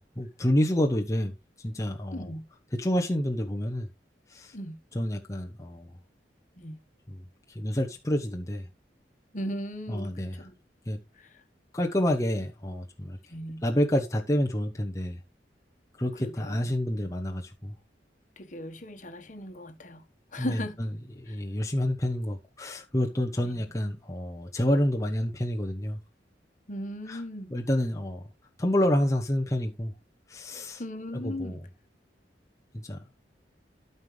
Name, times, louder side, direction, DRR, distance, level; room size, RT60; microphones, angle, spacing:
voice 1, 0.0-2.3 2.7-3.9 4.3-4.6 4.9-5.9 7.1-7.2 7.5-8.7 9.9-10.5 10.9-11.0 11.7-13.2 13.6-15.2 16.0-17.7 20.4-20.9 21.2-26.0 27.1-27.2 27.5-28.2 28.6-29.9 30.3-30.8 31.1-31.6 32.8-33.0, left 1 dB, 20° left, 0.9 m, -28 dB
voice 2, 2.1-2.4 4.5-4.8 6.6-6.8 9.3-10.5 11.2-11.4 13.3-13.6 16.2-16.7 18.4-20.0 20.3-20.8 21.3-21.4 23.4-23.7 26.7-27.6 30.8-31.6, left 1 dB, 45° left, 1.4 m, -37 dB
13.0 x 5.5 x 3.3 m
head